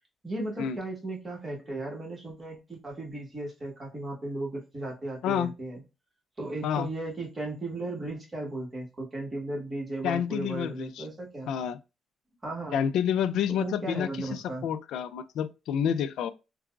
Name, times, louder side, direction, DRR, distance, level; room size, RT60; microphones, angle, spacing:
voice 1, 0.2-5.8 6.4-11.5 12.4-12.8 13.6-14.7, right 2 dB, 30° right, 1.6 m, -36 dB
voice 2, 5.2-5.5 6.6-6.9 10.0-11.1 11.5-11.8 12.7-16.3, left 9 dB, 80° left, 0.3 m, -29 dB
3.8 x 2.3 x 2.3 m
cardioid pair, 90°, 0 cm